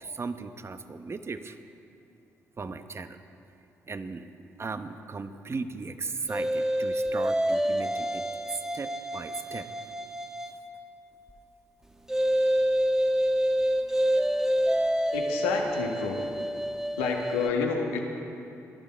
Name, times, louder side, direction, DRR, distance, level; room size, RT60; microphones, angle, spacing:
voice 1, 0.0-1.6 2.6-3.2 3.9-4.3 4.6-9.7, right 4 dB, 35° right, 9 dB, 1.0 m, -37 dB
sound 1, 6.3-10.7 12.1-17.5, equal, 5° right, 1.2 m, -27 dB
voice 2, 15.1-16.3 17.0-18.0, left 5 dB, 85° left, 1 dB, 1.6 m, -29 dB
22.0 x 11.5 x 4.5 m, 2.9 s
hypercardioid pair, 45°, 7 cm